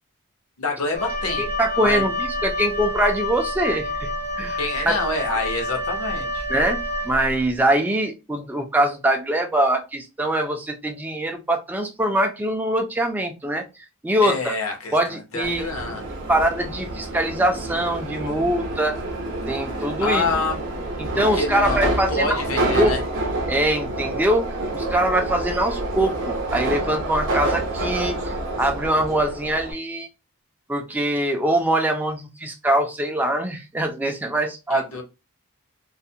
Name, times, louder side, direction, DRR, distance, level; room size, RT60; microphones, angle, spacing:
voice 1, 0.6-1.5 1.8-2.0 4.6-6.4 14.2-16.0 20.0-20.6 21.1-23.0 34.7-35.0, left 3 dB, 75° left, 0.8 m, -27 dB
Wind instrument woodwind instrument, 0.9-7.5, left 1 dB, 45° left, 0.6 m, -28 dB
voice 2, 1.4-4.1 4.4-4.6 6.5-14.5 14.9-15.7 16.3-19.0 19.5-20.3 21.0-22.4 22.8-23.0 23.5-30.1 30.7-34.9, right 1 dB, 10° right, 0.3 m, -23 dB
Subway metro underground, 15.4-29.7, right 2 dB, 60° right, 0.6 m, -28 dB
2.4 x 2.0 x 2.6 m
head